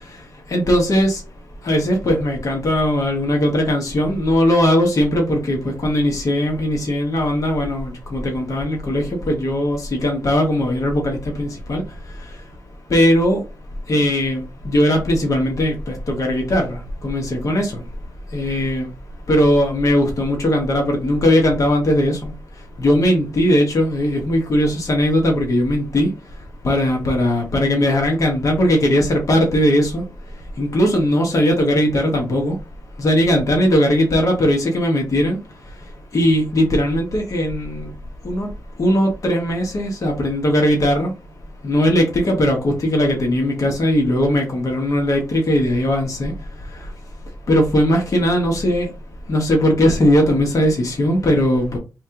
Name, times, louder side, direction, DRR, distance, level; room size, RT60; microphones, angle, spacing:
voice 1, 0.5-1.2 1.6-11.8 12.9-13.4 13.9-17.8 18.3-18.9 19.3-22.3 22.8-26.1 26.6-30.0 30.6-32.5 33.0-35.4 36.1-37.9 38.2-38.5 38.8-41.1 41.6-46.3 47.5-48.9 49.3-51.8, equal, 60° left, 1.2 m, -18 dB
3.2 x 2.7 x 3.7 m
cardioid pair, 65°, 6 cm